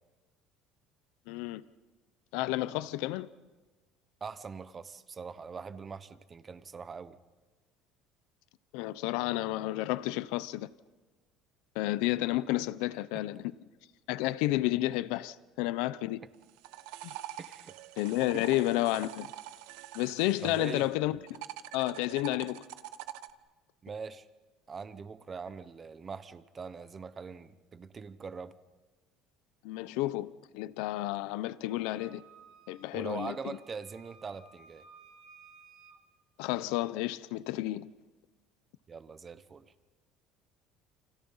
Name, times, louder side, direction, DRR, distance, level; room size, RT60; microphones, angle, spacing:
voice 1, 1.3-1.6 2.3-3.3 8.7-10.7 11.7-13.4 14.1-16.2 18.0-19.3 19.9-21.4 21.7-22.6 29.6-32.2 32.7-33.6 36.4-37.9, left 16 dB, 75° left, 0.8 m, -31 dB
voice 2, 4.2-7.2 13.1-13.4 17.4-17.8 18.3-18.4 20.4-20.9 23.8-24.3 24.7-28.5 32.9-34.8 38.9-39.7, right 5 dB, 20° right, 1.0 m, -42 dB
sound 1, 16.3-20.9 21.3-23.3, right 14 dB, 75° right, 1.2 m, -45 dB
Wind instrument woodwind instrument, 31.7-36.0, right 5 dB, 55° right, 2.8 m, -57 dB
29.5 x 29.0 x 5.7 m
cardioid pair, 170°, 0 cm